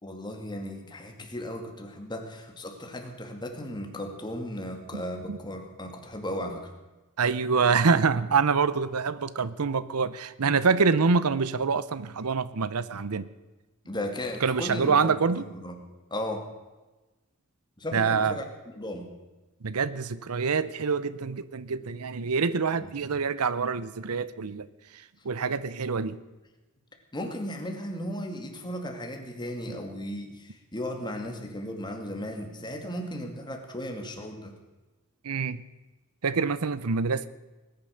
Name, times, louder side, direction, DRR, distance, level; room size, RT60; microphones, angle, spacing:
voice 1, 0.0-6.7 13.9-15.8 16.1-16.5 17.8-18.5 18.7-19.1 27.1-34.6, left 1 dB, 20° left, 3 dB, 2.3 m, -36 dB
voice 2, 7.2-13.3 14.4-15.5 17.9-18.4 19.6-24.7 24.9-26.2 35.2-35.6 36.2-37.3, right 5 dB, 85° right, 16 dB, 0.7 m, -26 dB
20.0 x 10.5 x 6.5 m, 1.1 s
head